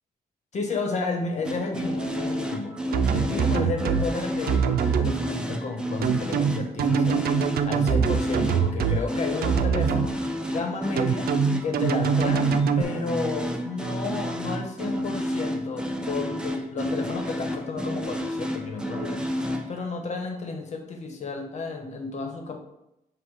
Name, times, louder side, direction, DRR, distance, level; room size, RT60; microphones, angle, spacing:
voice 1, 0.5-2.8 3.1-7.2 7.6-10.2 10.5-11.3 11.6-22.6, left 3 dB, 50° left, 2 dB, 1.2 m, -32 dB
sound 1, 1.4-19.8, equal, 5° right, 0.5 m, -31 dB
sound 2, 2.9-4.1 4.5-5.1 6.0-9.0 9.4-10.1 11.0-12.8, right 7 dB, 80° right, 0.5 m, -23 dB
7.6 x 2.9 x 4.8 m, 0.86 s
cardioid pair, 140°, 15 cm